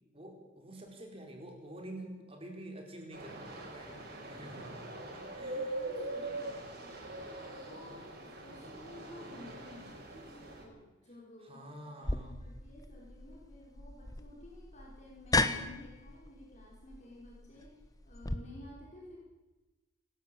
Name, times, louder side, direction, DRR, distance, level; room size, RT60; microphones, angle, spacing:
voice 1, 0.1-3.9 4.3-4.7 5.1-5.8 6.2-6.4 11.4-12.4, right 1 dB, 30° right, 2 dB, 4.3 m, -48 dB
sound 1, 3.1-10.6, right 2 dB, 55° right, 6.9 m, -42 dB
voice 2, 5.3-10.0 10.6-19.2, left 2 dB, 35° left, -3 dB, 5.3 m, -53 dB
sound 2, 12.0-18.4, left 2 dB, 20° left, 1.1 m, -36 dB
28.5 x 12.5 x 8.7 m, 1.1 s
head